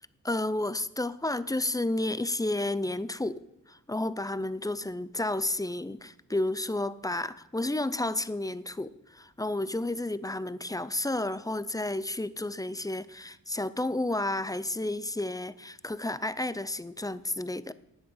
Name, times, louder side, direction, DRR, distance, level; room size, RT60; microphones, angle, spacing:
voice 1, 0.2-17.7, left 2 dB, 10° left, 16 dB, 0.4 m, -31 dB
16.0 x 10.0 x 5.5 m, 0.86 s
wide cardioid pair, 155°, 32 cm